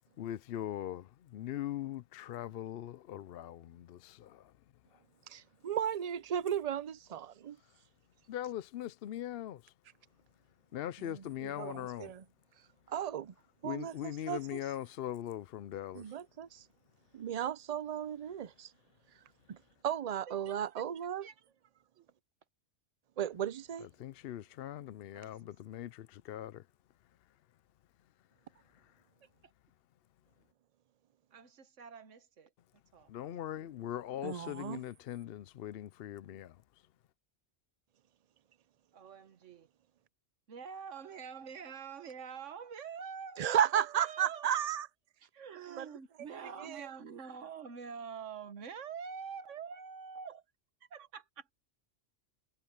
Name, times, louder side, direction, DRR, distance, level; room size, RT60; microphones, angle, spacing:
voice 1, 0.2-4.5 4.9-5.0 8.3-9.7 10.7-12.1 13.6-16.2 23.8-26.7 28.7-29.0 33.1-36.6, left 12 dB, 65° left, 0.7 m, -41 dB
voice 2, 5.3-7.6 11.0-12.2 12.9-13.3 13.6-14.6 15.9-16.6 17.1-18.7 19.5-19.6 19.8-21.3 23.2-23.9 34.2-34.8 43.4-44.9 45.7-45.9 46.6-46.8, right 9 dB, 50° right, 0.5 m, -35 dB
voice 3, 20.3-20.8 21.2-21.3 21.7-22.1 25.1-25.4 29.2-29.5 31.3-32.5 32.9-33.1 38.9-39.7 40.5-44.5 45.3-50.4 50.9-51.5, right 6 dB, 85° right, 1.5 m, -46 dB
omnidirectional pair, 1.2 m